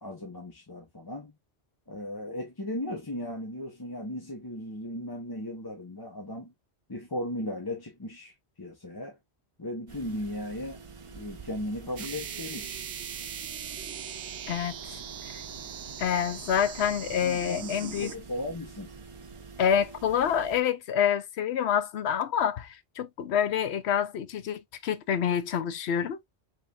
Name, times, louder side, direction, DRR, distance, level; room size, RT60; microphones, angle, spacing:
voice 1, 0.0-1.3 1.9-6.5 6.9-9.2 9.6-10.8 11.1-12.9 17.2-18.9, left 1 dB, 25° left, 0.8 m, -36 dB
sound 1, 9.9-20.6, right 5 dB, 40° right, 0.5 m, -47 dB
sound 2, 12.0-18.1, right 8 dB, 85° right, 0.9 m, -40 dB
voice 2, 14.5-14.8 15.3-15.4 16.0-18.1 19.6-22.7 23.0-26.2, left 8 dB, 75° left, 0.9 m, -27 dB
5.4 x 3.2 x 2.4 m
omnidirectional pair, 1.1 m